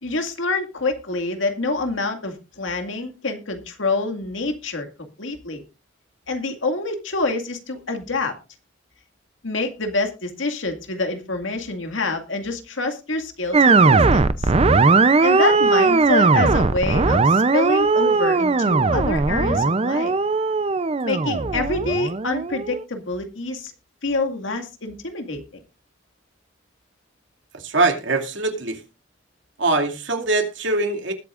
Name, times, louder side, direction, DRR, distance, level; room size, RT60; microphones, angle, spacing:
voice 1, 0.0-5.6 6.3-8.3 9.4-14.5 15.2-20.1 21.0-23.7 24.0-25.6, left 3 dB, 80° left, 5 dB, 2.2 m, -26 dB
sound 1, 13.5-22.8, right 3 dB, 30° right, 0.6 m, -18 dB
voice 2, 27.5-28.8 29.6-31.1, right 3 dB, 70° right, 4 dB, 2.5 m, -22 dB
20.5 x 8.4 x 2.5 m, 0.30 s
head